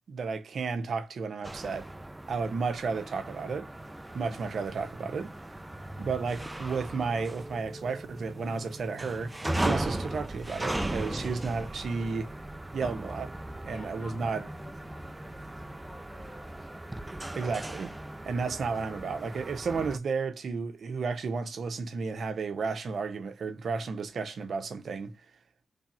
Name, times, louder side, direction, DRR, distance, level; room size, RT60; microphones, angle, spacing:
voice 1, 0.1-1.9 2.3-3.7 4.1-5.3 6.0-9.3 9.6-12.3 12.7-13.4 13.6-14.5 17.3-18.0 18.2-25.2, right 4 dB, 70° right, 0.7 m, -32 dB
sound 1, 1.4-20.0, right 1 dB, 15° right, 0.4 m, -37 dB
voice 2, 13.7-17.0, left 2 dB, 35° left, 1.7 m, -51 dB
3.4 x 2.4 x 4.0 m
cardioid pair, 90°, 0 cm